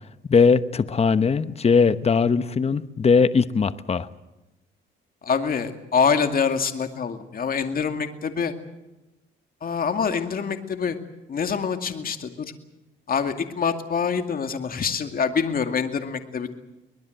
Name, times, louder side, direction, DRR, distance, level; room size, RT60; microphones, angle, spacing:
voice 1, 0.3-4.1, left 5 dB, 30° left, 13 dB, 1.0 m, -20 dB
voice 2, 5.2-8.5 9.6-11.0 11.3-12.5 13.1-16.5, left 6 dB, 45° left, 6 dB, 2.4 m, -25 dB
23.5 x 20.5 x 7.9 m, 1.0 s
cardioid pair, 90°, 20 cm